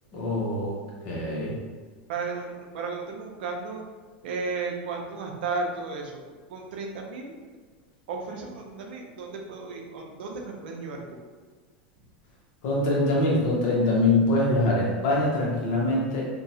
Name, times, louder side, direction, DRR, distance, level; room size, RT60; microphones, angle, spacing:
voice 1, 0.1-0.8 1.0-1.6 12.6-16.3, left 2 dB, 55° left, -4 dB, 1.0 m, -24 dB
voice 2, 2.1-3.8 4.2-6.2 6.5-7.3 8.1-11.2, right 4 dB, 75° right, 1 dB, 0.5 m, -34 dB
2.7 x 2.3 x 2.7 m, 1.4 s
hypercardioid pair, 105°, 6 cm